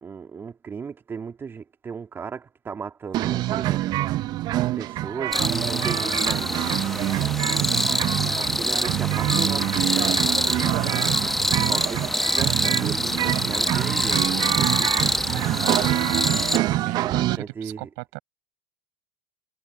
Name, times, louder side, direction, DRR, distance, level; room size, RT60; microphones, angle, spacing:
voice 1, 0.0-3.9 4.5-6.6 8.4-10.4 11.5-15.1 17.0-17.9, right 6 dB, 25° right, 2.7 m, -36 dB
sound 1, 3.1-17.4, right 15 dB, 45° right, 1.0 m, -26 dB
sound 2, 5.3-16.6, left 1 dB, ahead, 1.0 m, -25 dB
voice 2, 7.5-8.0 10.6-11.2 15.6-18.2, right 36 dB, 65° right, 6.0 m, -35 dB
hypercardioid pair, 100°, 10 cm